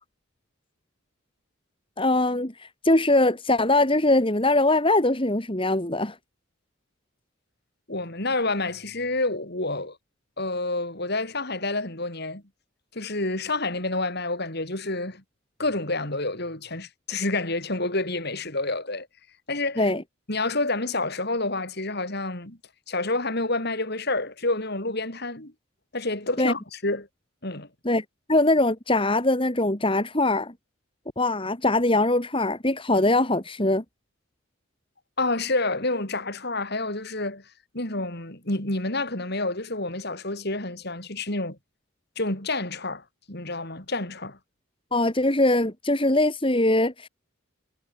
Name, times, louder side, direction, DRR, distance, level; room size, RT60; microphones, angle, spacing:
voice 1, 2.0-6.2 19.8-20.0 26.4-26.5 27.8-30.5 31.2-33.8 44.9-47.1, left 2 dB, 25° left, 2.6 m, -22 dB
voice 2, 7.9-10.0 10.4-12.4 12.9-15.2 15.6-19.1 19.5-19.9 20.3-22.6 22.9-25.5 25.9-27.1 27.4-27.7 35.2-37.4 37.7-41.6 42.1-44.4, left 2 dB, 50° left, 5.2 m, -28 dB
head